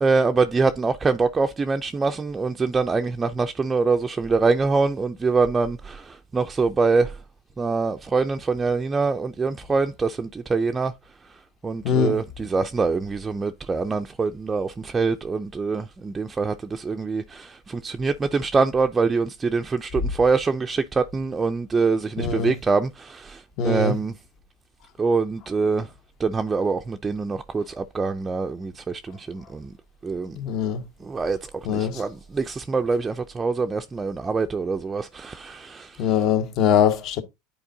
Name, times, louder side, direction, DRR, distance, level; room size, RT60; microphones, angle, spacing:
voice 1, 0.0-6.0 6.3-7.1 7.6-10.9 11.6-23.4 23.6-24.1 25.0-25.9 26.2-29.7 30.0-30.4 31.1-31.4 31.7-35.9, right 4 dB, 20° right, 0.4 m, -24 dB
voice 2, 11.8-12.2 22.2-22.5 23.6-24.0 30.4-30.8 31.6-32.0 36.0-37.2, left 7 dB, 50° left, 0.9 m, -22 dB
9.9 x 4.3 x 2.7 m
supercardioid pair, 115°, 0 cm